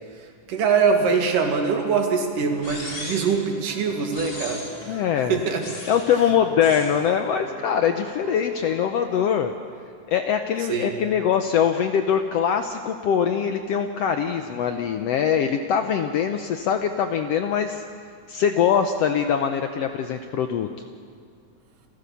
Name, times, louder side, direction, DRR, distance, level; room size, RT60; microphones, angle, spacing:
voice 1, 0.5-5.0 5.3-5.6 10.7-11.0, right 5 dB, 85° right, 3 dB, 3.5 m, -23 dB
sound 1, 2.3-5.6 6.2-9.0, right 1 dB, 10° right, 4.3 m, -43 dB
sound 2, 2.6-3.4 4.1-4.9 5.6-6.2 6.6-7.0, left 2 dB, 35° left, 3.4 m, -36 dB
voice 2, 4.9-5.4 5.9-9.5 10.1-17.8 18.3-20.7, left 8 dB, 75° left, 6 dB, 1.5 m, -23 dB
29.5 x 14.5 x 7.0 m, 2.1 s
omnidirectional pair, 3.6 m